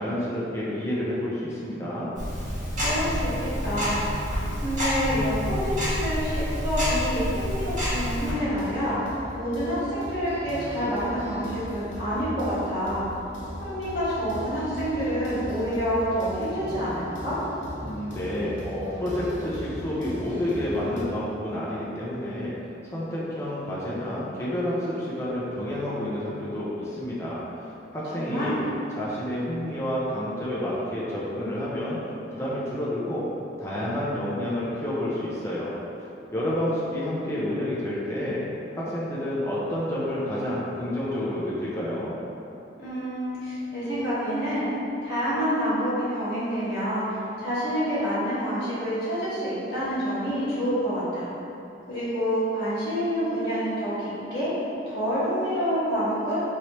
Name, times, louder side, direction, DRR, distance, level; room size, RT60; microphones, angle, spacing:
voice 1, 0.0-2.1 17.8-22.5 22.8-27.4 27.9-28.6 28.9-32.0 32.3-33.2 33.6-35.7 36.3-38.4 38.7-42.1, left 1 dB, 15° left, -8 dB, 0.5 m, -29 dB
Tick-tock, 2.1-8.3, equal, 45° right, 1.3 m, -28 dB
voice 2, 2.8-8.9 9.3-13.0 13.6-17.4 28.1-28.6 42.8-44.7 45.0-51.2 51.9-54.5 54.9-56.4, equal, 65° left, -12 dB, 1.4 m, -28 dB
sound 1, 8.0-21.0, equal, 90° left, 0.6 m, -38 dB
3.2 x 2.8 x 2.9 m, 2.9 s
head